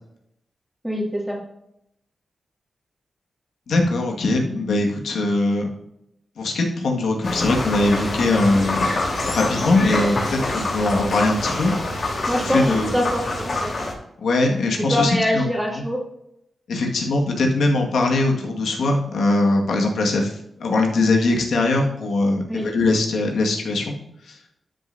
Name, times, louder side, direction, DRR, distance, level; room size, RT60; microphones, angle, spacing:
voice 1, 0.8-1.4 12.3-13.7 14.8-16.0 22.5-22.7, equal, ahead, -2 dB, 2.4 m, -24 dB
voice 2, 3.7-5.7 6.4-8.9 9.3-11.7 12.4-13.0 14.2-15.5 15.8-15.9 16.7-24.0 24.3-24.4, left 2 dB, 85° left, 0 dB, 1.8 m, -21 dB
sound 1, 7.2-13.9, left 2 dB, 55° left, 3.5 m, -26 dB
12.5 x 6.6 x 2.7 m, 0.80 s
wide cardioid pair, 90°, 0 cm